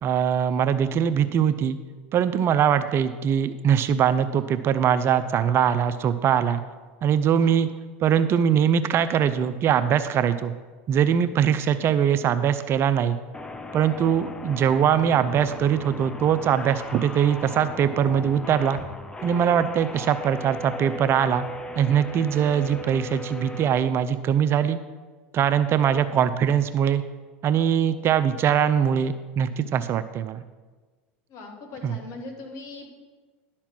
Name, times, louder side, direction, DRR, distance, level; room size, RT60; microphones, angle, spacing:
voice 1, 0.0-1.8 2.1-6.6 7.0-7.7 8.0-10.5 10.9-13.2 13.7-18.8 19.2-21.5 21.8-24.8 25.3-27.0 27.4-30.4 31.8-31.9, right 8 dB, 40° right, 11 dB, 0.5 m, -22 dB
sound 1, 13.3-23.6, left 1 dB, 15° left, 0.6 m, -37 dB
voice 2, 31.3-32.9, left 3 dB, 50° left, 2 dB, 1.9 m, -40 dB
11.0 x 4.4 x 6.1 m, 1.4 s
hypercardioid pair, 100°, 6 cm